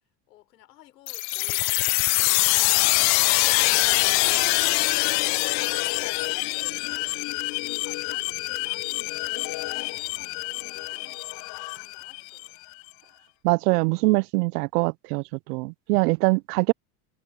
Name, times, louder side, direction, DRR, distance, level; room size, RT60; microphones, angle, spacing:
voice 1, 0.3-4.1 4.5-12.6, left 16 dB, 85° left, 4.8 m, -54 dB
sound 1, 1.1-12.5, left 29 dB, 55° left, 0.5 m, -24 dB
voice 2, 13.4-16.7, right 25 dB, 75° right, 0.5 m, -23 dB
hypercardioid pair, 95°, 48 cm